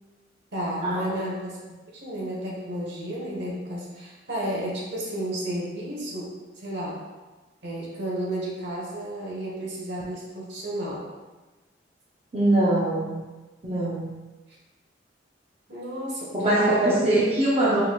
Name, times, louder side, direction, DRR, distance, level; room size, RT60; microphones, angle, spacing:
voice 1, 0.5-7.0 7.6-11.1 15.7-16.9, right 1 dB, 70° right, -4 dB, 1.1 m, -32 dB
voice 2, 12.3-13.2 13.6-14.1 16.3-17.8, right 1 dB, 30° right, -7 dB, 0.6 m, -22 dB
4.3 x 3.8 x 2.3 m, 1.2 s
head